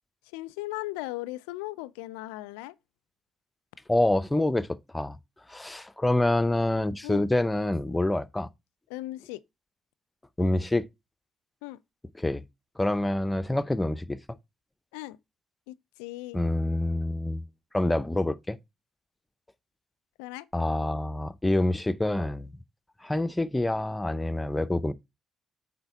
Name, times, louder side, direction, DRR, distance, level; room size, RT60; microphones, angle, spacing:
voice 1, 0.3-2.7 7.0-7.3 8.9-9.4 11.6-11.8 14.9-15.2 15.7-16.4 20.2-20.5, left 18 dB, 80° left, 0.4 m, -37 dB
voice 2, 3.9-4.7 4.9-5.2 5.5-8.5 10.4-10.8 12.2-12.4 12.8-14.2 16.3-17.5 17.7-18.6 20.5-22.6 23.0-24.9, left 1 dB, 15° left, 0.7 m, -26 dB
7.9 x 4.4 x 4.2 m
hypercardioid pair, 45°, 0 cm